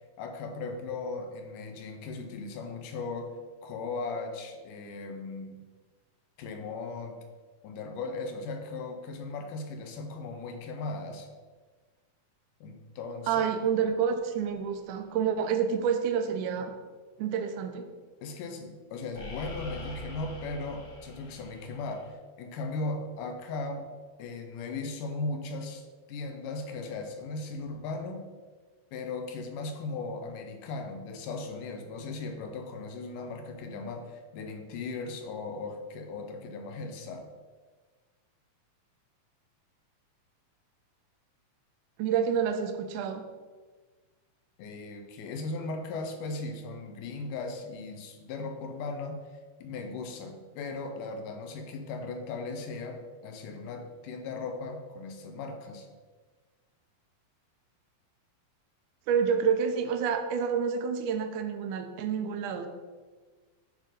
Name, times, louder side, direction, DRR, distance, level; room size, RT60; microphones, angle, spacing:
voice 1, 0.2-3.4 3.6-5.6 6.4-7.2 7.6-11.3 12.6-13.4 18.2-23.9 24.2-28.3 28.9-37.3 44.6-49.2 49.6-55.9, left 3 dB, 75° left, 5 dB, 2.1 m, -37 dB
voice 2, 13.3-16.7 17.2-17.9 42.0-43.2 59.1-62.7, right 7 dB, 80° right, 7 dB, 1.9 m, -28 dB
sound 1, 14.3-14.6 19.2-22.1, left 2 dB, 60° left, 2.0 m, -44 dB
9.1 x 3.8 x 5.0 m, 1.4 s
omnidirectional pair, 4.1 m